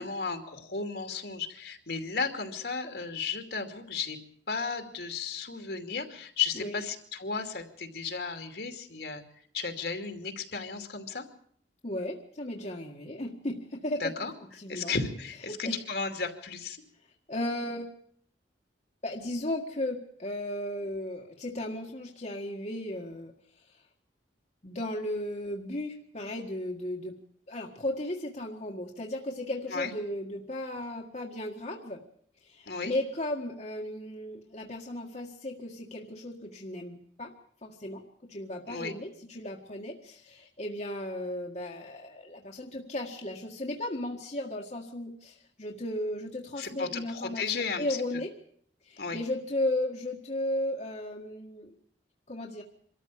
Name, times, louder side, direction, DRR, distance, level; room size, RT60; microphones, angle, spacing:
voice 1, 0.0-4.2 4.5-9.2 9.5-11.3 14.0-14.3 14.7-16.8 29.7-29.9 32.7-32.9 38.7-38.9 46.6-48.0 49.0-49.2, left 5 dB, 65° left, 5 dB, 2.7 m, -34 dB
voice 2, 11.8-14.1 14.6-14.9 15.5-15.8 17.3-17.9 19.0-23.3 24.6-27.2 27.5-32.0 32.4-37.3 37.6-38.0 38.3-48.3 48.8-51.7 52.3-52.6, left 1 dB, 40° left, 0 dB, 1.8 m, -35 dB
25.0 x 13.5 x 8.5 m, 0.63 s
head